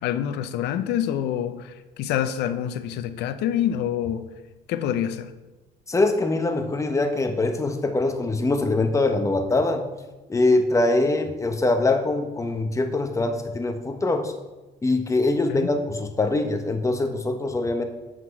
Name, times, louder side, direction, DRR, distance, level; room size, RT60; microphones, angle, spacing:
voice 1, 0.0-4.2 4.7-5.3 15.5-15.7, left 10 dB, 80° left, 11 dB, 0.6 m, -26 dB
voice 2, 5.9-9.9 10.3-14.3 14.8-17.8, left 2 dB, 20° left, 6 dB, 0.9 m, -23 dB
7.9 x 6.0 x 4.6 m, 1.1 s
cardioid pair, 110°, 17 cm